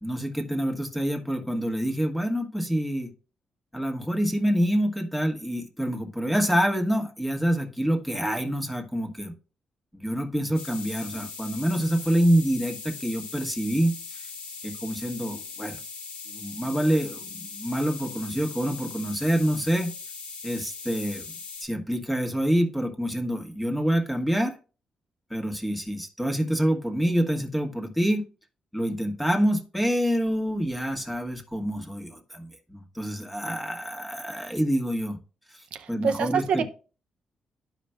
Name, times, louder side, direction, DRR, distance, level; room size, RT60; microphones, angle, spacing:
voice 1, 0.0-3.1 3.7-9.3 9.9-14.3 14.6-15.8 16.3-19.9 20.4-21.3 21.6-24.6 25.3-28.2 28.7-35.2 35.5-36.6, equal, 5° left, 3 dB, 1.3 m, -27 dB
sound 1, 10.5-21.6, left 4 dB, 80° left, 1.9 m, -40 dB
voice 2, 35.7-36.6, right 6 dB, 70° right, 7 dB, 0.6 m, -26 dB
12.5 x 5.0 x 2.2 m, 0.35 s
cardioid pair, 140°, 2 cm